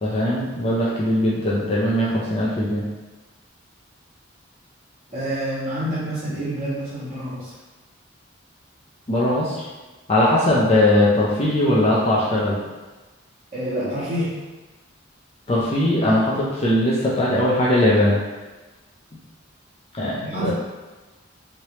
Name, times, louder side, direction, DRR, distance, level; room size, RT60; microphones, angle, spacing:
voice 1, 0.0-2.8 9.1-9.6 10.1-12.6 15.5-18.2 19.9-20.5, left 1 dB, 30° left, -6 dB, 0.5 m, -20 dB
voice 2, 5.1-7.5 13.5-14.3 20.2-20.5, right 1 dB, 35° right, -11 dB, 1.5 m, -27 dB
3.2 x 2.9 x 2.9 m, 1.2 s
head